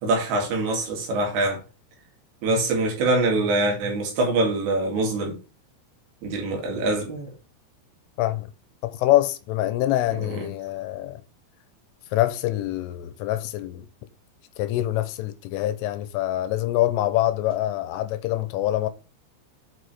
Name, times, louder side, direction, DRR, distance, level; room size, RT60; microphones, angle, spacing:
voice 1, 0.0-1.6 2.4-5.4 6.2-7.3 10.1-10.5, right 2 dB, 65° right, 4.2 m, -24 dB
voice 2, 8.8-11.2 12.1-13.9 14.6-18.9, left 14 dB, 85° left, 3.2 m, -25 dB
8.2 x 5.0 x 4.8 m
omnidirectional pair, 5.8 m